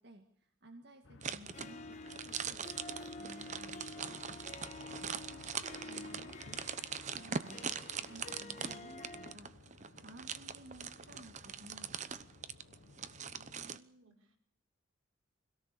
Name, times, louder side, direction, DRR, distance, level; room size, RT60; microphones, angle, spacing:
voice 1, 0.0-4.4 5.0-7.8 8.0-9.5 10.0-12.1, right 1 dB, 55° right, 5 dB, 2.0 m, -56 dB
sound 1, 1.0-13.8, left 3 dB, 65° left, 1.0 m, -57 dB
sound 2, 1.2-13.8, right 6 dB, 35° right, 0.9 m, -42 dB
Harp, 1.5-9.3, left 2 dB, 35° left, 1.6 m, -49 dB
voice 2, 13.3-14.4, equal, 85° right, 3 dB, 5.4 m, -62 dB
25.0 x 17.5 x 6.9 m, 0.66 s
head